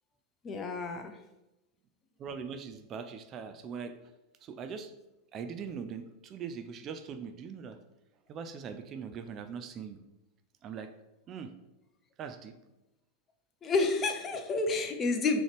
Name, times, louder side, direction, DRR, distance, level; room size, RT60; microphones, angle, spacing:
voice 1, 0.4-1.2 13.6-15.4, left 3 dB, 25° left, 5 dB, 0.5 m, -29 dB
voice 2, 2.2-3.9 4.4-4.9 5.3-7.8 8.3-10.0 10.6-10.9 11.3-11.5 12.2-12.5, right 6 dB, 35° right, 9 dB, 0.3 m, -41 dB
3.8 x 3.0 x 3.3 m, 0.97 s
figure-of-eight pair, 85°, 0 cm